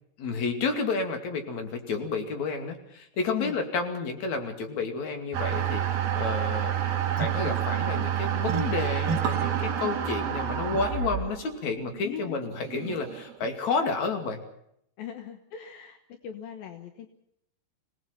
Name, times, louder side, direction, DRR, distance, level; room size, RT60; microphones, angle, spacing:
voice 1, 0.2-6.8 7.2-14.4, left 4 dB, 45° left, 5 dB, 3.1 m, -31 dB
sound 1, 5.3-13.5, right 9 dB, 55° right, 3.4 m, -29 dB
voice 2, 12.0-12.4 15.0-16.0 16.2-17.1, left 10 dB, 70° left, 6 dB, 2.2 m, -39 dB
26.5 x 18.5 x 5.9 m, 0.73 s
omnidirectional pair, 5.8 m